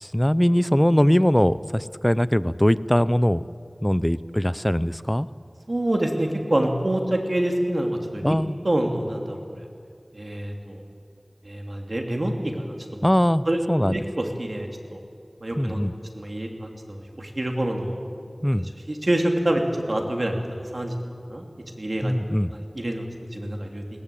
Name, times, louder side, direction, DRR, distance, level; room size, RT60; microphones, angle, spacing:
voice 1, 0.0-3.4 3.8-5.3 8.2-8.6 13.0-13.9 15.6-15.9 18.4-18.7 22.0-22.5, equal, 10° left, 16 dB, 0.6 m, -21 dB
voice 2, 5.7-8.4 8.6-9.7 10.1-10.8 11.4-13.0 13.5-15.0 15.4-15.9 16.1-18.0 18.5-19.6 19.9-20.9 21.3-21.4 21.8-22.1 22.5-23.1 23.3-23.8, right 1 dB, 55° right, 2 dB, 3.1 m, -27 dB
21.5 x 19.0 x 8.6 m, 2.3 s
wide cardioid pair, 45°, 0 cm